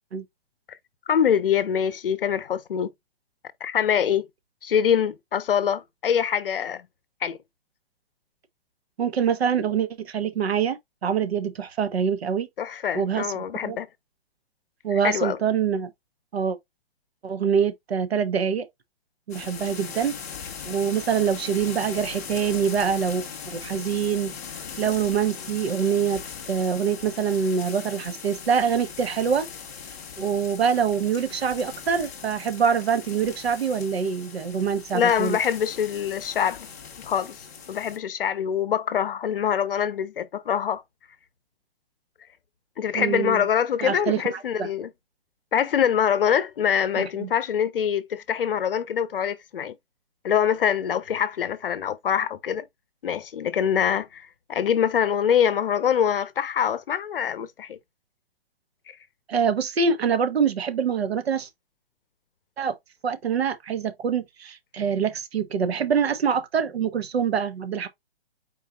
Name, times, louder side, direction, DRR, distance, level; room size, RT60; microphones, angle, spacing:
voice 1, 1.1-2.9 3.6-4.3 4.6-6.9 7.2-7.4 12.6-13.9 14.9-15.4 34.9-36.7 37.0-37.4 37.7-40.8 42.8-44.9 45.5-49.8 50.2-52.7 53.0-57.8, left 8 dB, 65° left, 0.8 m, -24 dB
voice 2, 9.0-12.5 12.9-13.3 13.6-13.8 14.8-15.9 16.3-16.6 17.2-18.7 19.3-20.1 20.6-24.3 24.8-26.2 26.5-29.5 30.2-35.4 42.9-43.4 43.8-44.2 44.6-44.7 47.2-47.3 59.3-61.5 62.6-62.8 63.0-67.9, right 7 dB, 85° right, 1.3 m, -25 dB
sound 1, 19.3-38.0, left 7 dB, 15° left, 0.6 m, -39 dB
4.6 x 2.6 x 4.3 m
hypercardioid pair, 175°, 30 cm